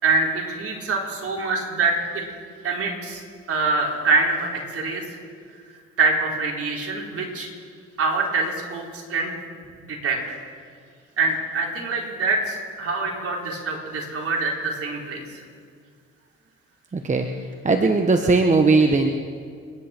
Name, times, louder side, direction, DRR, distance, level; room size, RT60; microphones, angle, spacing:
voice 1, 0.0-1.9 2.6-3.2 3.5-5.0 6.0-7.5 8.0-9.3 9.8-10.4 11.2-15.4, right 3 dB, 50° right, -1 dB, 4.1 m, -25 dB
voice 2, 16.9-19.1, right 3 dB, 25° right, 5 dB, 1.2 m, -19 dB
29.5 x 10.5 x 4.5 m, 2.1 s
supercardioid pair, 75°, 29 cm